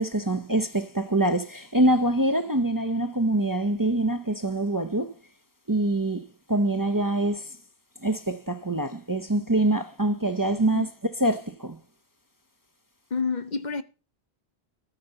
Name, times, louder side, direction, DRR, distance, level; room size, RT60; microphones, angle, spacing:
voice 1, 0.0-5.1 5.7-7.5 8.0-10.9 11.2-11.8, right 1 dB, 20° right, 0.8 m, -25 dB
voice 2, 13.1-13.8, left 4 dB, 45° left, 0.9 m, -28 dB
14.0 x 5.5 x 8.0 m
omnidirectional pair, 1.1 m